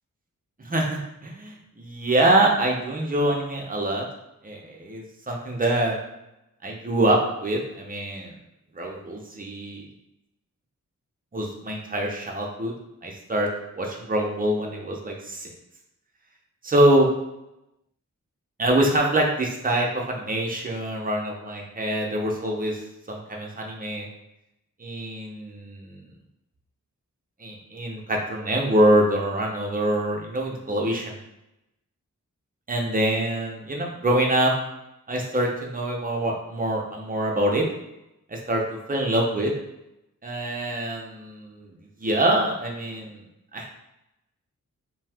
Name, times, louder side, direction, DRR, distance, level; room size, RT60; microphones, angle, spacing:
voice 1, 0.6-4.0 4.4-6.0 6.6-8.3 8.8-9.8 11.3-12.7 13.0-13.5 13.8-15.5 16.6-17.1 18.6-22.8 23.1-24.1 24.8-26.0 27.4-31.2 32.7-34.5 35.1-37.6 38.3-38.6 38.9-39.5 40.2-41.7 42.0-43.2 43.5-43.7, right 1 dB, 25° right, -1 dB, 0.6 m, -24 dB
2.7 x 2.3 x 3.4 m, 0.89 s
wide cardioid pair, 90°, 31 cm